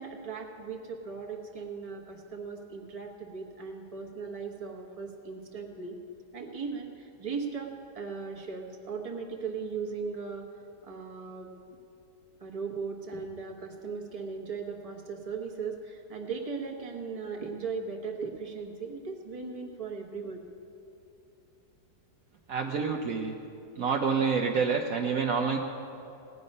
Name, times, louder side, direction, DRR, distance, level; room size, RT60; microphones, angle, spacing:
voice 1, 0.0-6.0 6.3-10.5 10.8-11.5 12.4-20.4, right 5 dB, 25° right, 1 dB, 1.1 m, -38 dB
voice 2, 22.5-23.3 23.8-25.6, right 5 dB, 60° right, 2 dB, 1.0 m, -27 dB
17.5 x 9.5 x 5.4 m, 2.7 s
omnidirectional pair, 1.8 m